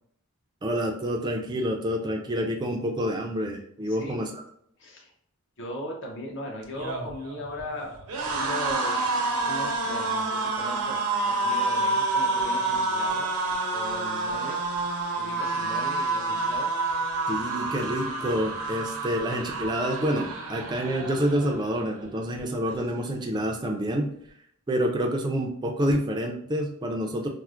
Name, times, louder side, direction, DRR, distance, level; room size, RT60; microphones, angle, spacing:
voice 1, 0.6-4.4 17.3-24.1 24.7-27.3, equal, 20° right, 1 dB, 0.3 m, -28 dB
voice 2, 3.9-4.2 4.8-5.1 5.6-8.0 8.2-13.3 13.7-14.6 15.2-16.7, left 1 dB, 55° left, -1 dB, 0.7 m, -38 dB
sound 1, 6.6-21.8 22.2-22.4 22.7-23.5, right 3 dB, 85° right, 0.7 m, -29 dB
4.3 x 2.1 x 2.4 m, 0.69 s
head